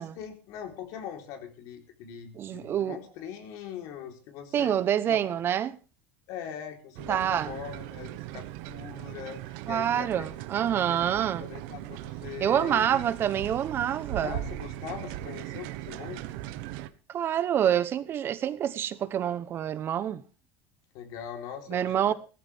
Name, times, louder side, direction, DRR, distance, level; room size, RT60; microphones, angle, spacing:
voice 1, 0.0-4.8 5.1-5.2 6.3-10.4 10.9-11.0 11.4-13.0 14.2-16.2 20.9-22.1, left 8 dB, 60° left, 4.0 m, -41 dB
voice 2, 2.3-3.0 4.5-5.8 7.1-7.5 9.7-11.5 12.4-14.4 17.1-20.2 21.7-22.1, right 10 dB, 35° right, 1.0 m, -27 dB
sound 1, 7.0-16.9, right 13 dB, 70° right, 1.3 m, -39 dB
17.5 x 14.0 x 3.6 m
supercardioid pair, 135°, 7 cm